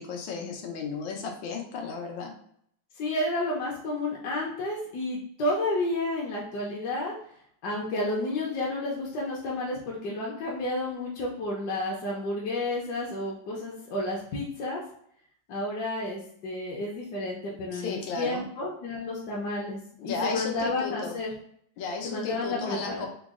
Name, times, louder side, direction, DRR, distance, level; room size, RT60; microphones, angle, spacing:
voice 1, 0.0-2.3 17.7-18.4 20.0-21.2 21.8-23.1, left 5 dB, 85° left, 2 dB, 1.5 m, -34 dB
voice 2, 2.9-7.1 7.6-14.8 15.5-21.3 22.0-23.1, left 2 dB, 70° left, -4 dB, 1.2 m, -31 dB
3.9 x 2.0 x 3.5 m, 0.67 s
omnidirectional pair, 2.0 m